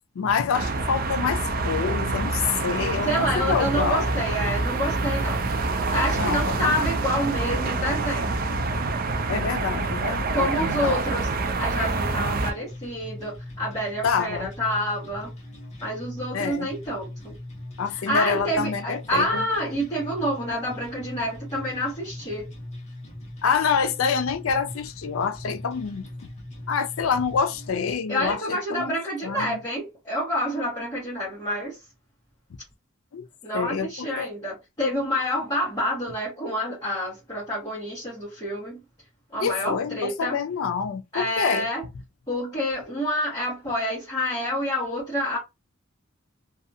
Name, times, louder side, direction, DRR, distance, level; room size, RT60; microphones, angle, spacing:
voice 1, 0.2-4.1 6.2-6.7 9.3-11.0 14.0-14.5 16.3-16.7 17.8-19.5 23.4-26.1 26.7-28.9 29.2-29.6 33.1-33.3 33.5-34.3 39.4-41.7, left 6 dB, 85° left, 0.5 m, -27 dB
sound 1, 0.5-12.5, right 3 dB, 45° right, 0.4 m, -26 dB
voice 2, 3.0-5.5 5.9-8.4 10.3-11.3 11.6-15.3 15.8-17.3 17.9-22.5 28.1-31.8 33.4-38.8 39.3-40.4 41.1-41.8 42.3-45.4, equal, 20° left, 1.3 m, -28 dB
sound 2, 11.8-27.8, left 1 dB, 35° left, 1.0 m, -40 dB
2.6 x 2.4 x 2.7 m
head